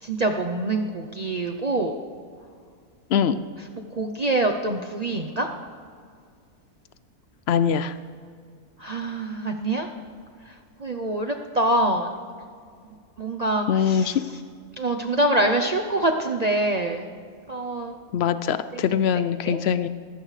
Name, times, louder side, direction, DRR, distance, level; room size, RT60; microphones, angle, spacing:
voice 1, 0.0-2.0 3.9-5.5 8.8-9.9 10.5-10.6 10.8-12.1 13.2-14.2 14.8-17.1 17.5-18.0 18.7-18.8 19.4-19.6, right 2 dB, 45° right, 3 dB, 0.5 m, -25 dB
voice 2, 7.5-7.9 13.7-14.2 18.1-19.9, left 8 dB, 75° left, 13 dB, 0.6 m, -22 dB
21.0 x 15.5 x 3.3 m, 2.1 s
omnidirectional pair, 1.6 m